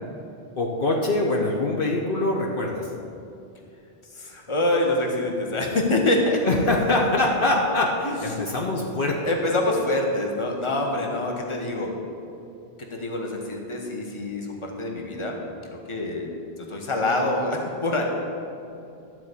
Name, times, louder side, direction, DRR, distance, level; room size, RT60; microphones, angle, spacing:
voice 1, 0.6-2.9 6.4-9.2, left 2 dB, 60° left, -1 dB, 1.1 m, -23 dB
voice 2, 4.1-6.4 8.0-8.2 9.2-11.9 12.9-15.4 15.9-16.3 16.6-18.0, left 2 dB, 30° left, 1 dB, 1.3 m, -25 dB
12.5 x 4.6 x 8.3 m, 2.7 s
omnidirectional pair, 1.1 m